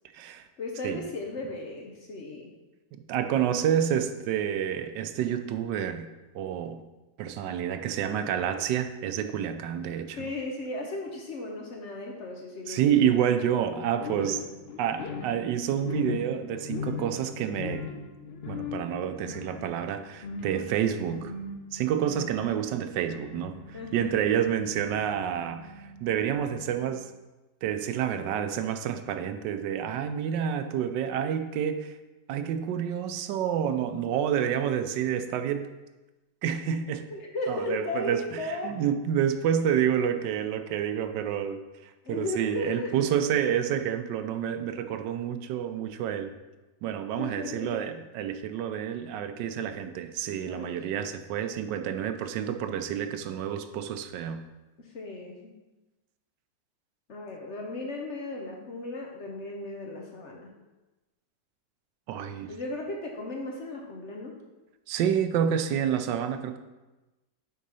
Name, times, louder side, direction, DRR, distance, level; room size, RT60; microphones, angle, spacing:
voice 1, 0.6-2.5 10.2-12.9 23.7-24.1 37.1-38.8 42.0-43.3 47.2-47.8 49.6-49.7 50.4-50.8 54.8-55.5 57.1-60.5 62.5-64.4, left 2 dB, 55° left, 0 dB, 0.9 m, -36 dB
voice 2, 3.1-6.1 6.3-6.8 7.2-10.2 12.7-14.4 14.8-17.9 18.5-21.3 21.7-27.1 27.6-31.9 32.3-35.7 36.4-37.0 37.5-46.3 46.8-54.4 62.1-62.5 64.9-66.6, right 9 dB, 90° right, 8 dB, 1.2 m, -29 dB
sound 1, 14.0-26.9, left 4 dB, 85° left, 0.5 m, -40 dB
6.4 x 3.8 x 5.5 m, 1.1 s
omnidirectional pair, 1.9 m